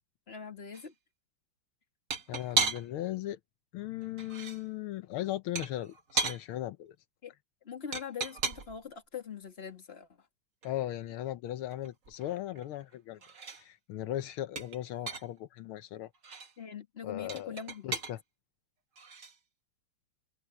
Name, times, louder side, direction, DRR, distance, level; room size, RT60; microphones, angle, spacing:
voice 1, 0.3-0.9 7.2-7.3 7.6-10.1 16.6-18.0, left 7 dB, 30° left, 2.2 m, -42 dB
sound 1, 0.7-0.9 2.1-3.1 4.0-4.6 5.6-6.4 7.9-8.8 10.6-10.7 11.1-11.2 11.5-12.9 13.2-13.6 14.6-15.4 16.1-16.5 17.3-18.1 19.0-19.4, right 4 dB, 40° right, 1.8 m, -35 dB
voice 2, 2.3-3.4 3.7-7.0 10.6-13.2 13.6-16.1 17.0-17.6 17.8-18.2, left 13 dB, 80° left, 1.6 m, -37 dB
omnidirectional pair, 2.3 m